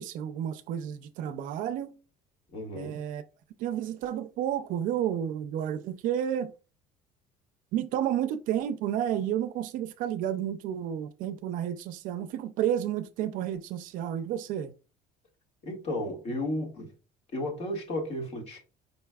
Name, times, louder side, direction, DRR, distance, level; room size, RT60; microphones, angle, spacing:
voice 1, 0.0-2.0 2.8-3.2 3.6-6.5 7.7-14.7, right 10 dB, 60° right, 0.5 m, -31 dB
voice 2, 2.5-3.0 15.6-16.9 17.3-18.6, left 1 dB, 40° left, 1.9 m, -33 dB
5.3 x 4.2 x 2.3 m
cardioid pair, 160°, 16 cm